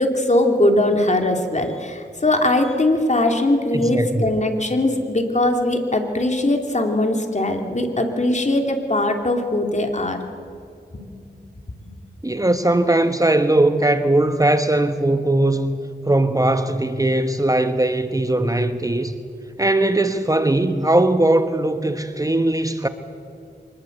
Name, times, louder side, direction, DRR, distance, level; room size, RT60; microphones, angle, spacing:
voice 1, 0.0-10.2 10.9-11.2, left 1 dB, 45° left, 3.1 m, -20 dB
voice 2, 3.7-4.3 12.2-15.8 16.0-19.1 19.6-22.9, right 1 dB, 20° right, 1.2 m, -19 dB
24.5 x 20.5 x 8.1 m
wide cardioid pair, 70°, 17 cm